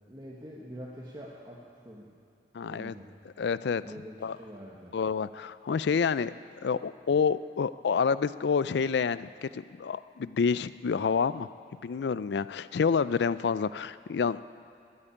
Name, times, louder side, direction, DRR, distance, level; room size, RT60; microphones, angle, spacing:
voice 1, 0.1-2.1 2.6-3.1 3.8-5.0, equal, 25° right, -5 dB, 1.3 m, -45 dB
voice 2, 2.5-2.9 3.4-3.8 4.2-4.4 4.9-6.3 6.6-11.5 11.8-14.4, left 6 dB, 75° left, 16 dB, 0.4 m, -28 dB
13.0 x 8.9 x 9.9 m, 2.4 s
head